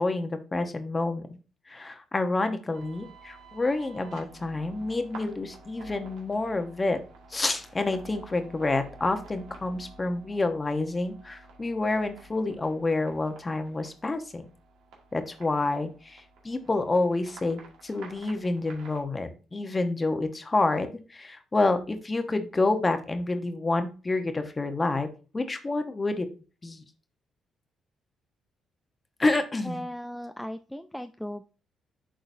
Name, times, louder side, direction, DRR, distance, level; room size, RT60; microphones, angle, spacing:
voice 1, 0.0-1.4 1.7-7.0 7.3-14.4 15.1-25.1 25.3-26.3 26.6-26.8 29.2-29.9, left 2 dB, 25° left, 8 dB, 1.0 m, -28 dB
sound 1, 2.7-19.0, right 3 dB, 85° right, 1.9 m, -50 dB
voice 2, 29.6-31.4, equal, 5° left, 8 dB, 0.4 m, -37 dB
10.5 x 3.9 x 2.7 m, 0.34 s
cardioid pair, 90°, 0 cm